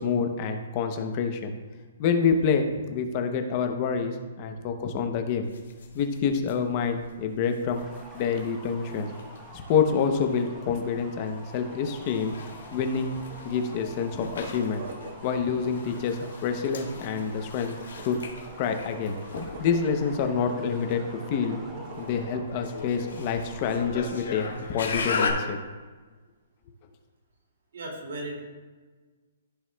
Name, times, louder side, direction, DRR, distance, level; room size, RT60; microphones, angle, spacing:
voice 1, 0.0-1.5 2.0-5.5 5.9-7.9 8.1-9.1 9.7-12.3 12.7-13.1 13.4-14.8 15.2-17.7 18.0-18.2 18.6-19.2 19.6-21.6 22.0-25.6, left 6 dB, 25° left, 5 dB, 0.7 m, -27 dB
sound 1, 5.5-25.3, left 5 dB, 90° left, 1.9 m, -38 dB
sound 2, 7.7-25.9, equal, 10° right, 0.9 m, -47 dB
sound 3, 14.4-22.5, right 3 dB, 45° right, 0.7 m, -44 dB
voice 2, 27.7-28.4, right 1 dB, 60° right, 1 dB, 2.3 m, -36 dB
14.5 x 6.0 x 2.2 m, 1.4 s
hypercardioid pair, 175°, 0 cm